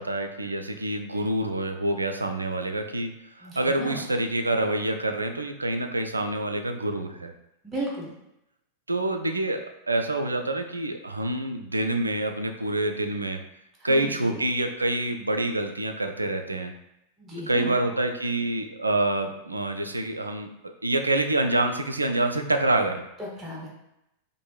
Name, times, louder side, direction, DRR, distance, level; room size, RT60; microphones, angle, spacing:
voice 1, 0.0-3.1 3.4-7.3 8.9-13.4 13.8-16.7 17.5-20.5 20.8-23.0, right 2 dB, 80° right, 6 dB, 0.3 m, -27 dB
voice 2, 3.4-4.0 7.6-8.1 13.8-14.4 17.2-17.8 23.2-23.7, right 1 dB, 15° right, -5 dB, 0.9 m, -35 dB
4.5 x 2.6 x 2.3 m, 0.84 s
figure-of-eight pair, 90°, 0 cm